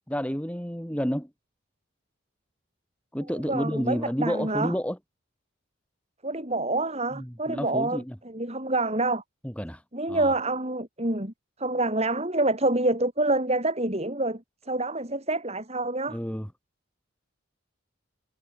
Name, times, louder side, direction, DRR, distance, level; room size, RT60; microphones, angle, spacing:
voice 1, 0.1-1.3 3.1-5.0 7.1-8.1 9.4-9.8 10.1-10.3 16.1-16.5, equal, 5° left, 7.8 m, -30 dB
voice 2, 3.3-4.7 6.2-9.2 9.9-11.3 11.6-16.2, right 2 dB, 30° right, 6.0 m, -27 dB
head